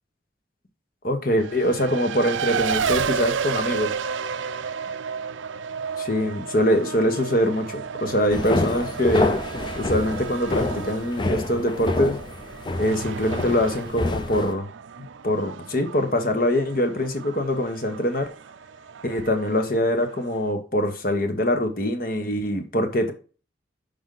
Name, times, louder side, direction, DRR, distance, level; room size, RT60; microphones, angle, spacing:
voice 1, 1.0-4.0 6.0-9.3 9.8-12.2 12.8-14.7 15.0-18.3 19.0-23.1, left 1 dB, 50° left, 6 dB, 1.2 m, -23 dB
Race car auto racing, 1.4-20.5, right 6 dB, 90° right, 0.5 m, -32 dB
sound 1, 8.3-14.5, left 2 dB, 25° left, 0.5 m, -28 dB
6.1 x 5.1 x 3.9 m, 0.35 s
head